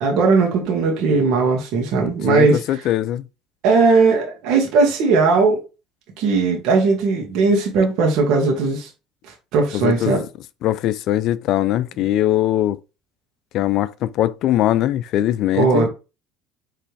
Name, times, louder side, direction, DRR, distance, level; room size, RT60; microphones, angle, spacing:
voice 1, 0.0-2.8 3.6-5.6 6.2-8.9 9.5-10.2 15.5-15.9, right 4 dB, 70° right, 1.5 m, -18 dB
voice 2, 2.3-3.2 9.7-10.2 10.6-12.8 13.5-15.9, left 13 dB, 60° left, 0.4 m, -21 dB
5.0 x 3.2 x 3.3 m
supercardioid pair, 85°, 0 cm